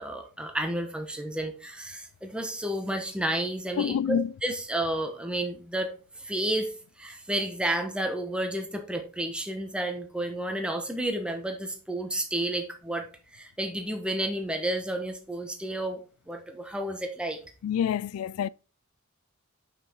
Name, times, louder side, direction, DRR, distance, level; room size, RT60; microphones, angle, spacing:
voice 1, 0.0-6.7 7.0-17.4, right 1 dB, 5° right, 1.1 m, -31 dB
voice 2, 3.8-4.3 17.6-18.5, left 8 dB, 85° left, 0.3 m, -27 dB
6.1 x 5.8 x 4.5 m
head